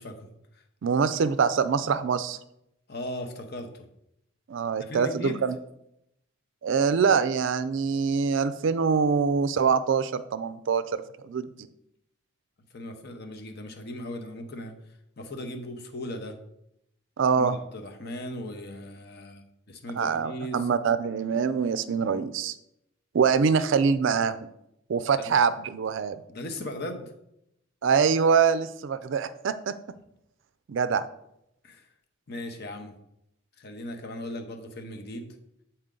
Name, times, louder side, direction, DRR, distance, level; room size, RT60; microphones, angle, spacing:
voice 1, 0.0-0.6 2.9-3.9 4.8-5.4 12.7-14.7 15.2-16.4 17.4-20.7 25.2-25.3 26.3-27.1 31.6-31.9 32.3-32.9 33.6-35.4, left 1 dB, 50° left, 5 dB, 0.8 m, -38 dB
voice 2, 0.8-2.4 4.5-5.6 6.6-10.8 11.2-11.5 17.2-17.6 20.0-22.6 23.1-24.4 24.9-26.2 27.8-29.7 30.7-31.0, right 6 dB, 60° right, 13 dB, 0.4 m, -24 dB
7.9 x 4.3 x 3.8 m, 0.81 s
head